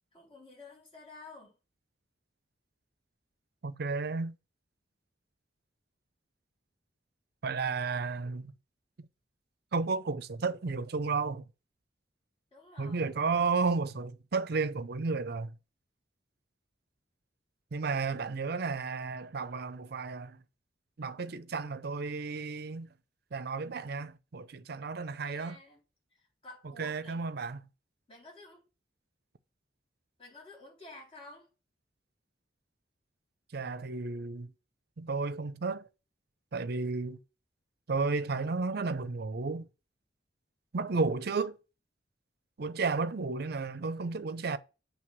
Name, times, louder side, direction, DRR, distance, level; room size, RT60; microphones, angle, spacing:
voice 1, 0.1-1.6 12.5-13.1 25.2-25.8 26.1-27.2 28.1-28.6 30.2-31.5, left 2 dB, 30° left, 4.2 m, -51 dB
voice 2, 3.6-4.3 7.4-8.5 9.7-11.4 12.8-15.5 17.7-20.4 21.0-22.9 23.3-25.6 26.8-27.6 33.5-34.5 35.0-35.9 36.5-37.2 37.9-39.7 40.7-41.6 42.6-44.6, right 4 dB, 60° right, 0.6 m, -32 dB
7.7 x 3.4 x 6.1 m
head